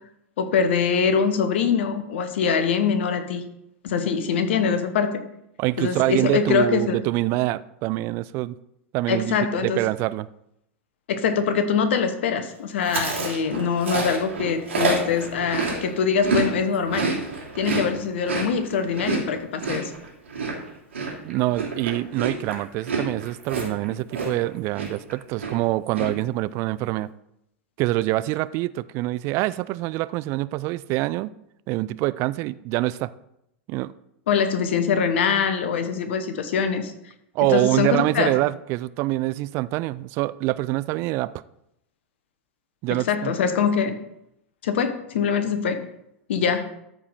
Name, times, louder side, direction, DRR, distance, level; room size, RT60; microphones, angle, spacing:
voice 1, 0.4-3.4 3.8-5.2 5.8-7.0 9.1-9.8 11.1-17.1 17.6-19.9 34.3-36.9 37.4-38.3 42.9-44.0 44.6-45.9 46.3-46.7, left 6 dB, 60° left, 1.1 m, -23 dB
voice 2, 5.6-8.6 8.9-10.3 21.2-27.1 27.8-31.3 31.7-33.1 33.7-33.9 37.3-41.3 42.8-43.3, right 18 dB, 40° right, 0.4 m, -25 dB
Chewing mastication, 12.8-16.5 16.7-24.5 24.7-25.1 25.4-26.1, right 4 dB, 75° right, 3.0 m, -28 dB
13.5 x 4.8 x 4.2 m
figure-of-eight pair, 90°, 7 cm